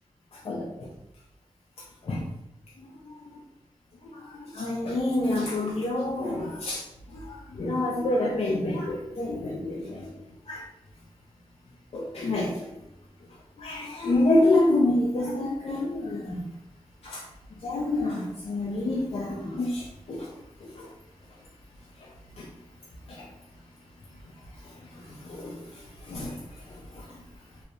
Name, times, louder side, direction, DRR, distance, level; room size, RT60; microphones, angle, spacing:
voice 1, 0.3-0.9 2.0-2.2 2.8-3.4 4.1-10.1 10.5-10.6 11.9-12.7 13.6-16.4 17.0-17.2 17.6-20.3 20.6-20.9 22.0-22.1 22.4-22.5 23.1-23.3 24.6-26.4 26.7-27.1, left 2 dB, 60° left, -3 dB, 0.4 m, -28 dB
2.6 x 2.0 x 2.5 m, 0.87 s
cardioid pair, 55°, 12 cm